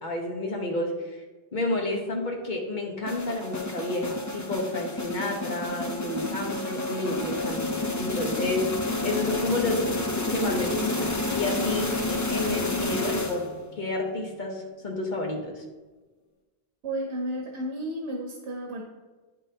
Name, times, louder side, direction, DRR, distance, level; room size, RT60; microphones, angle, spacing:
voice 1, 0.0-1.2 1.5-9.9 10.3-13.4 13.8-15.6, left 2 dB, 45° left, 1 dB, 1.2 m, -30 dB
sound 1, 3.1-13.7, left 2 dB, 20° left, 0.5 m, -30 dB
voice 2, 16.8-18.8, right 1 dB, 85° right, 0 dB, 1.1 m, -32 dB
9.7 x 5.4 x 2.8 m, 1.3 s
omnidirectional pair, 1.1 m